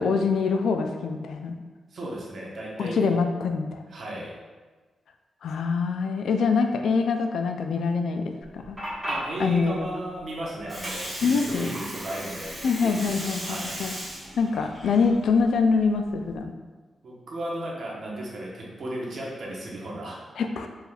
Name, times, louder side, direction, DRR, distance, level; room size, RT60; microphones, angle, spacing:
voice 1, 0.0-1.6 2.8-3.8 5.4-8.8 9.4-9.9 11.2-11.8 12.6-14.0 14.4-16.5 20.4-20.7, left 5 dB, 80° left, 6 dB, 0.3 m, -24 dB
voice 2, 1.9-3.0 3.9-4.3 9.1-12.5 12.8-13.7 17.0-20.2, right 1 dB, 55° right, -3 dB, 0.9 m, -35 dB
Water, 8.4-16.4, right 1 dB, 10° right, 1.3 m, -37 dB
4.6 x 3.4 x 2.3 m, 1.3 s
wide cardioid pair, 155°, 0 cm